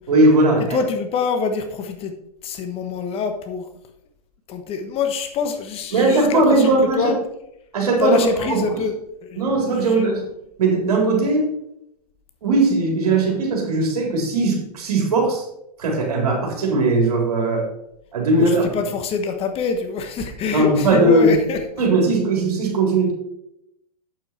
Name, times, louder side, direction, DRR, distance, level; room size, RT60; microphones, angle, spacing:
voice 1, 0.1-0.8 5.9-7.2 7.7-8.6 9.4-10.2 10.6-11.5 12.4-15.4 15.8-17.7 18.1-18.7 20.5-21.3 21.8-23.1, right 2 dB, 65° right, 0 dB, 3.9 m, -18 dB
voice 2, 0.6-2.1 2.4-3.7 4.5-7.2 8.0-8.9 9.3-9.4 9.7-10.1 18.4-21.6, left 4 dB, 30° left, 7 dB, 1.2 m, -25 dB
8.6 x 7.3 x 4.4 m, 0.80 s
hypercardioid pair, 110°, 20 cm